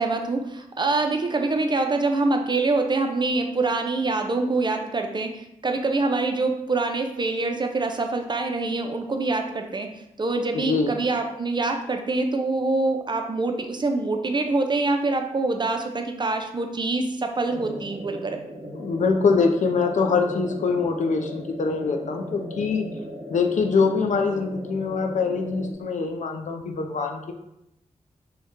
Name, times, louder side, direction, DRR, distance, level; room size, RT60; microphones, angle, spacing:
voice 1, 0.0-9.9 10.2-18.4, right 3 dB, 35° right, 4 dB, 0.4 m, -25 dB
voice 2, 10.5-10.9 18.7-22.8 23.3-27.3, left 4 dB, 65° left, 4 dB, 0.4 m, -24 dB
sound 1, 17.4-25.7, equal, 65° right, 0.8 m, -38 dB
2.7 x 2.2 x 3.5 m, 0.83 s
cardioid pair, 45°, 14 cm